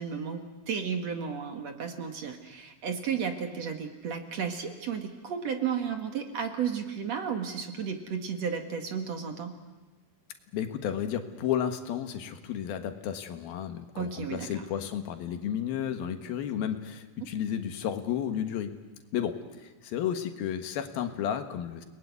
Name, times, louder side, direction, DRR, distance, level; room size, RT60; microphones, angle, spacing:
voice 1, 0.0-9.5 13.9-14.5, right 7 dB, 55° right, 5 dB, 2.6 m, -33 dB
voice 2, 10.5-18.7 19.1-21.9, left 9 dB, 85° left, 7 dB, 3.4 m, -32 dB
29.5 x 20.5 x 9.6 m, 1.2 s
omnidirectional pair, 4.2 m